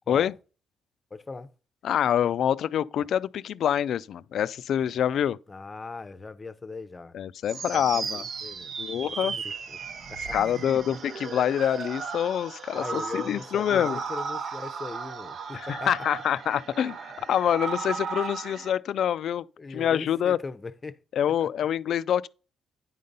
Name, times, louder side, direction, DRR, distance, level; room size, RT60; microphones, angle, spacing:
voice 1, 1.1-1.5 3.0-3.1 5.5-7.2 7.7-9.8 10.1-10.4 12.7-15.9 19.6-21.0 21.4-21.5, left 3 dB, 25° left, 0.6 m, -40 dB
voice 2, 1.8-5.4 7.1-8.2 8.8-9.4 10.3-14.0 15.5-17.0 17.3-19.4 19.7-20.4 21.2-22.3, left 9 dB, 70° left, 0.3 m, -26 dB
sound 1, 7.4-18.7, right 5 dB, 60° right, 0.8 m, -36 dB
9.4 x 3.9 x 5.4 m
cardioid pair, 90°, 0 cm